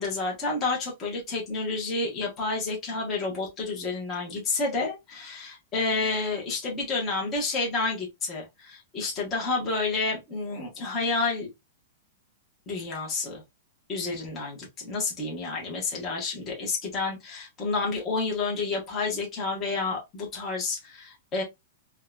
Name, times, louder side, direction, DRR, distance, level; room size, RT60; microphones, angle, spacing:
voice 1, 0.0-11.5 12.7-13.4 13.9-21.4, left 3 dB, 20° left, 0.9 m, -30 dB
3.6 x 2.1 x 2.3 m
supercardioid pair, 165°, 0 cm